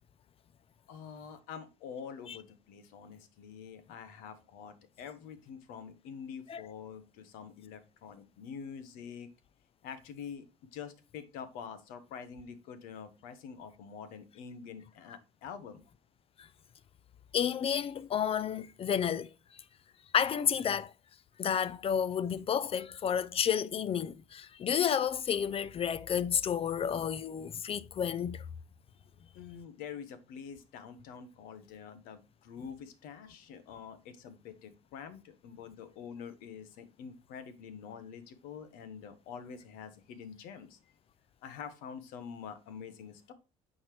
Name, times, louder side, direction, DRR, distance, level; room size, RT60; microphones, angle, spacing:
voice 1, 0.9-9.3 9.8-10.4 10.7-15.8 29.3-40.8 41.4-43.3, left 7 dB, 75° left, 1.3 m, -46 dB
voice 2, 17.3-19.3 20.1-20.9 21.4-28.4, left 8 dB, 40° left, 0.6 m, -31 dB
8.8 x 4.6 x 3.2 m
supercardioid pair, 80°, 15 cm